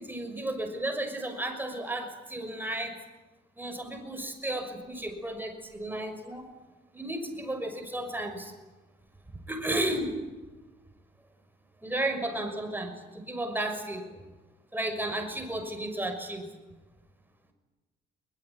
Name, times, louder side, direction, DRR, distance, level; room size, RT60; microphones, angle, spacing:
voice 1, 0.0-3.0 3.6-6.5 6.9-8.5 9.5-10.2 11.8-14.2 14.7-16.5, right 1 dB, 10° right, 5 dB, 6.3 m, -33 dB
22.0 x 21.0 x 9.9 m, 1.2 s
cardioid pair, 90°, 20 cm